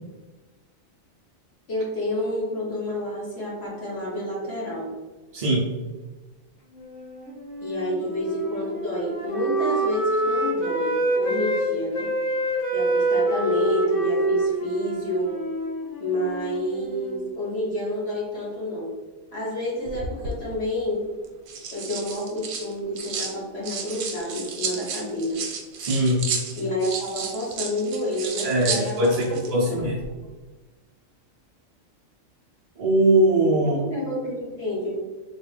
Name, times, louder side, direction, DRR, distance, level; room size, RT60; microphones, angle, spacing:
voice 1, 1.7-5.0 7.6-12.1 12.7-15.4 16.0-18.9 19.3-21.0 21.7-25.4 26.6-29.9 33.6-34.9, left 1 dB, 50° left, -6 dB, 1.4 m, -29 dB
voice 2, 5.3-5.7 25.8-26.3 28.4-30.0 32.8-33.8, right 1 dB, 50° right, -4 dB, 0.5 m, -21 dB
Wind instrument woodwind instrument, 6.7-11.6 11.9-17.2, right 1 dB, 85° left, 1.4 m, -26 dB
sound 1, 19.9-20.4 21.2-23.3 23.6-29.5 29.8-30.1, right 5 dB, 80° right, 1.0 m, -32 dB
3.6 x 2.3 x 3.2 m, 1.3 s
omnidirectional pair, 1.4 m